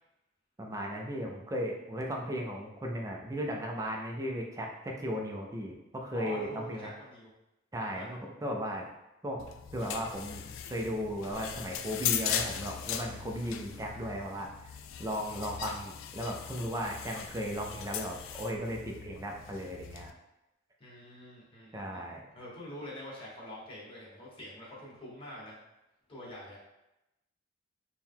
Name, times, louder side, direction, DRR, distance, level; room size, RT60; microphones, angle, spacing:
voice 1, 0.6-6.9 7.7-8.9 9.2-9.5 9.7-20.1 21.7-22.2, equal, 15° right, 0 dB, 0.5 m, -36 dB
voice 2, 6.1-7.3 7.8-8.1 20.8-25.6 26.1-26.6, left 1 dB, 30° left, -6 dB, 1.3 m, -45 dB
sound 1, 9.4-20.1, left 9 dB, 75° left, 0.3 m, -39 dB
4.4 x 2.2 x 3.6 m, 0.92 s
head